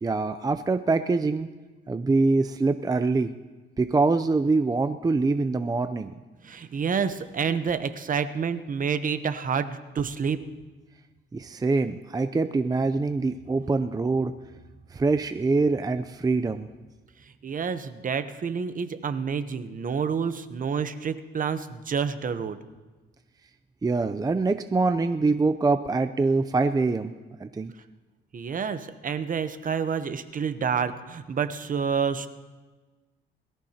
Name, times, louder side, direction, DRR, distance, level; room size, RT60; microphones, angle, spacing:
voice 1, 0.0-1.5 1.9-3.3 3.8-6.1 11.3-14.3 14.9-16.7 23.8-27.1 27.4-27.7, right 3 dB, 20° right, 10 dB, 0.5 m, -24 dB
voice 2, 6.4-10.4 17.4-22.6 28.3-32.3, right 6 dB, 45° right, 11 dB, 0.9 m, -28 dB
21.5 x 13.5 x 2.9 m, 1.3 s
cardioid pair, 90°, 20 cm